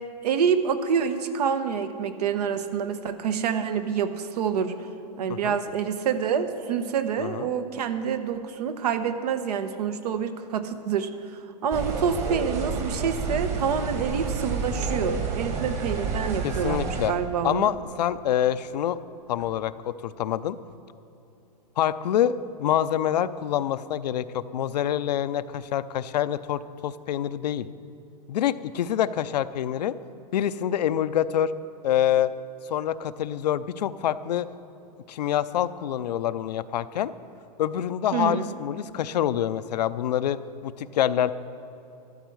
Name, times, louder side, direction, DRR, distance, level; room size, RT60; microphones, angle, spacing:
voice 1, 0.2-4.8 5.2-17.7 38.1-38.5, right 7 dB, 70° right, 10 dB, 1.0 m, -27 dB
voice 2, 7.2-7.5 16.4-17.1 17.4-19.0 19.3-20.6 21.8-22.3 22.6-27.7 28.3-29.9 30.3-31.5 31.8-32.3 32.7-34.5 35.1-37.1 37.6-41.3, left 10 dB, 75° left, 14 dB, 0.5 m, -26 dB
sound 1, 11.7-17.1, right 4 dB, 35° right, 1.8 m, -29 dB
13.0 x 12.0 x 4.7 m, 2.7 s
hypercardioid pair, 135°, 21 cm